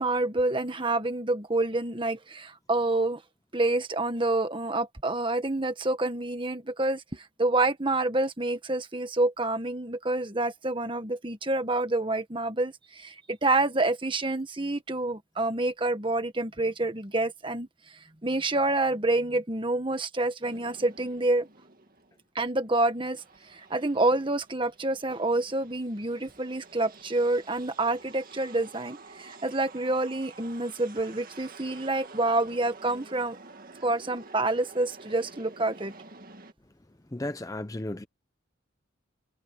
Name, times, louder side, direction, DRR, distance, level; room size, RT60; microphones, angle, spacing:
voice 1, 0.0-3.2 3.5-17.7 18.2-21.5 22.3-33.4 33.8-35.9, right 2 dB, 25° right, 1.6 m, -28 dB
sound 1, 20.4-22.2 22.7-36.5, right 3 dB, 45° right, 2.1 m, -50 dB
voice 2, 37.1-38.1, left 1 dB, 15° left, 0.6 m, -34 dB
head